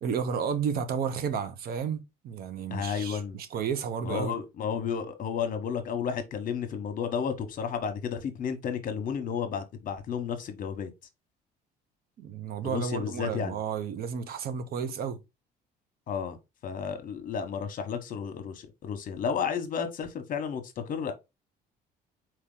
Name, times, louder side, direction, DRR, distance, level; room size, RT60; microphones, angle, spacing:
voice 1, 0.0-4.4 12.2-15.2, right 7 dB, 65° right, 0.8 m, -32 dB
voice 2, 2.7-3.4 4.0-10.9 12.6-13.6 16.1-16.4 16.6-21.1, left 7 dB, 55° left, 1.1 m, -32 dB
4.5 x 2.9 x 3.7 m
cardioid pair, 110°, 17 cm